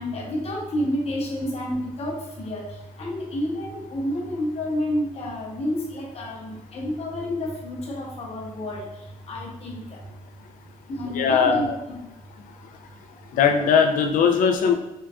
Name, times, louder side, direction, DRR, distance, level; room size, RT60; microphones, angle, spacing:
voice 1, 0.0-10.1 10.9-12.0, left 1 dB, 50° left, -2 dB, 0.8 m, -30 dB
voice 2, 11.0-11.7 13.3-14.7, left 6 dB, 75° left, 5 dB, 0.4 m, -19 dB
3.8 x 2.2 x 2.3 m, 0.95 s
cardioid pair, 100°, 14 cm